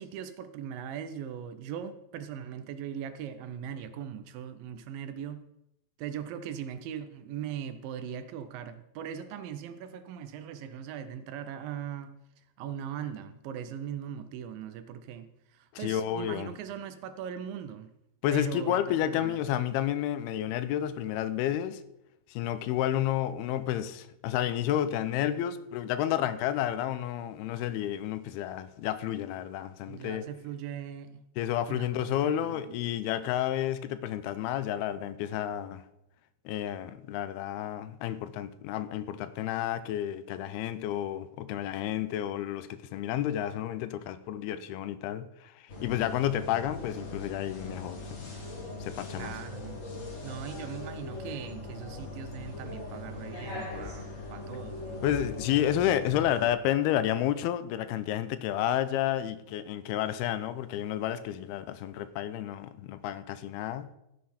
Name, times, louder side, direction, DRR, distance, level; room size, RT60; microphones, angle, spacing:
voice 1, 0.0-5.5 6.0-12.1 12.6-17.9 18.3-19.4 29.9-31.2 31.7-32.8 49.2-49.8 50.2-55.3, right 9 dB, 80° right, 2.2 m, -40 dB
voice 2, 15.8-16.5 18.2-21.8 22.3-30.3 31.4-35.8 36.5-45.5 45.8-48.3 48.8-49.3 55.0-63.9, left 11 dB, 90° left, 2.6 m, -31 dB
sound 1, 45.7-56.5, left 2 dB, 35° left, 1.2 m, -40 dB
15.5 x 7.7 x 4.3 m
omnidirectional pair, 4.5 m